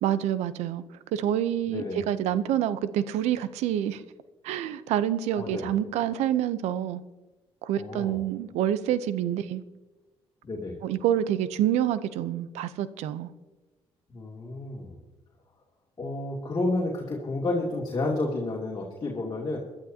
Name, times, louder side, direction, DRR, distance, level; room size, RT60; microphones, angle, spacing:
voice 1, 0.0-4.0 4.4-7.0 7.6-9.6 10.8-13.3, right 11 dB, 90° right, 14 dB, 0.7 m, -27 dB
voice 2, 1.7-2.1 5.4-5.7 7.7-8.2 10.4-10.8 14.1-15.0 16.0-19.6, left 2 dB, 35° left, -3 dB, 2.6 m, -31 dB
22.0 x 12.0 x 2.8 m, 1.1 s
cardioid pair, 85°, 11 cm